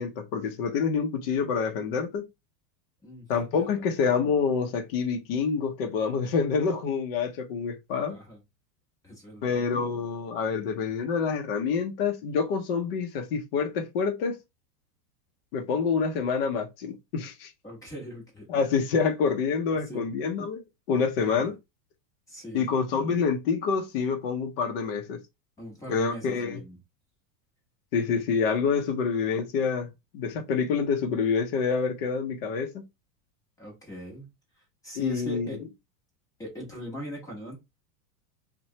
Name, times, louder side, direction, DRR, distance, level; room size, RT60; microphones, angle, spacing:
voice 1, 0.0-2.2 3.3-8.2 9.4-14.4 15.5-17.5 18.5-21.5 22.5-25.2 25.9-26.6 27.9-32.8 35.0-35.5, left 5 dB, 40° left, 0.6 m, -27 dB
voice 2, 8.1-8.4 9.0-9.6 17.6-18.5 19.8-20.0 21.2-21.5 22.3-22.8 25.6-26.8 33.6-34.3 34.6-35.6 36.4-37.5, equal, 5° left, 0.8 m, -40 dB
2.9 x 2.1 x 2.7 m
supercardioid pair, 165°, 49 cm